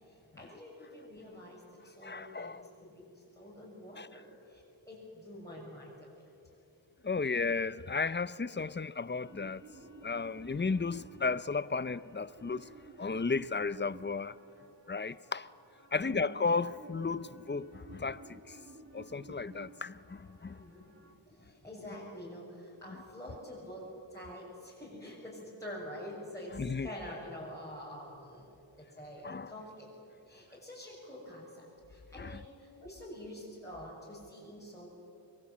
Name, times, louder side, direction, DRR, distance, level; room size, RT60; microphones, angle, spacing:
voice 1, 0.4-1.6 1.8-2.6 2.9-3.1 3.4-4.3 4.9-6.0 15.9-16.3 19.7-19.8 20.5-21.0 21.6-23.8 24.1-26.5 26.8-28.5 28.8-29.9 30.3-31.6 31.9-32.5 32.8-34.9, equal, 5° left, 7.0 m, -46 dB
voice 2, 2.0-2.7 4.0-4.1 7.0-9.6 10.0-12.7 13.0-14.4 14.9-15.5 15.9-18.6 18.9-20.6 26.5-26.9 29.2-29.5 32.2-32.4, left 4 dB, 25° left, 0.6 m, -34 dB
sound 1, 9.2-21.2, right 3 dB, 35° right, 2.0 m, -54 dB
25.0 x 22.5 x 8.6 m
wide cardioid pair, 70°, 44 cm